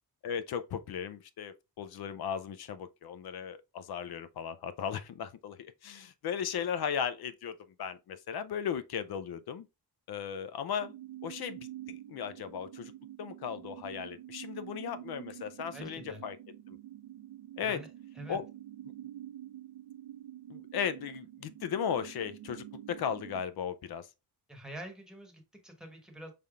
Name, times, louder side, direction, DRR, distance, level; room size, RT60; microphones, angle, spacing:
voice 1, 0.2-9.7 10.1-10.9 11.2-12.9 13.2-16.4 16.7-16.8 17.6-17.8 18.3-18.4 20.5-24.1, left 7 dB, 65° left, 0.6 m, -36 dB
sound 1, 10.8-23.4, right 12 dB, 70° right, 0.5 m, -47 dB
voice 2, 15.7-16.2 17.6-17.9 18.2-18.4 24.5-26.3, right 1 dB, ahead, 1.1 m, -46 dB
5.5 x 3.4 x 2.4 m
wide cardioid pair, 145°, 42 cm